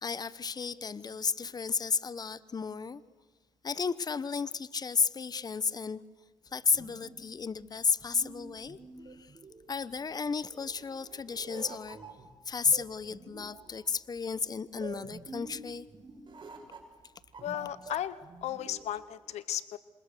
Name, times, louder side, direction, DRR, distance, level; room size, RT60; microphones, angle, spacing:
voice 1, 0.0-3.0 3.6-6.0 6.5-8.8 9.2-9.3 9.7-12.0 12.5-15.9, left 5 dB, 35° left, 17 dB, 1.0 m, -32 dB
sound 1, 6.5-19.0, right 4 dB, 45° right, 6.0 m, -48 dB
voice 2, 17.4-19.8, left 11 dB, 75° left, 16 dB, 0.8 m, -35 dB
27.0 x 26.5 x 6.8 m, 1.4 s
cardioid pair, 70°, 11 cm